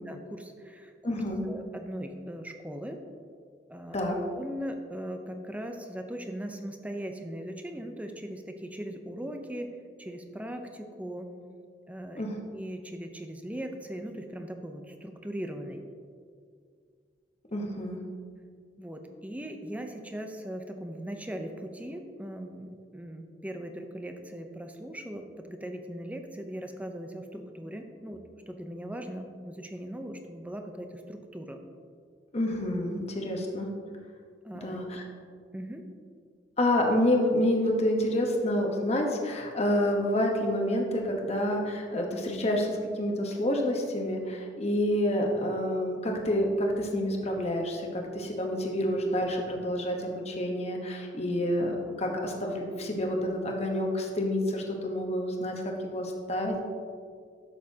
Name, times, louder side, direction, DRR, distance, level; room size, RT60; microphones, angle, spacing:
voice 1, 0.1-3.0 3.7-4.1 4.3-9.7 10.0-11.3 11.9-12.3 12.5-15.8 18.8-31.6 34.4-34.8 35.5-35.8, equal, 10° right, 5 dB, 0.6 m, -39 dB
voice 2, 1.0-1.4 3.9-4.2 12.2-12.3 17.5-18.0 32.3-33.7 34.6-35.0 36.6-55.5 55.8-56.6, left 1 dB, 35° left, 1 dB, 1.1 m, -28 dB
12.5 x 6.5 x 2.8 m, 2.1 s
head